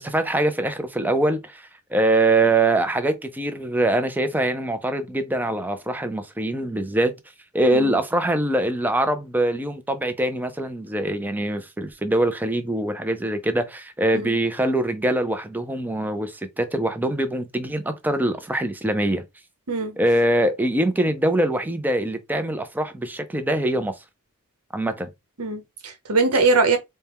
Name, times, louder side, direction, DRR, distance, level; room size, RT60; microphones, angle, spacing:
voice 1, 0.0-7.1 7.5-19.2 20.0-23.9 24.7-25.1, right 1 dB, 10° right, 0.5 m, -23 dB
voice 2, 7.6-8.0 14.1-14.4 19.7-20.0 25.4-26.8, right 3 dB, 80° right, 0.9 m, -22 dB
4.2 x 2.2 x 3.5 m
head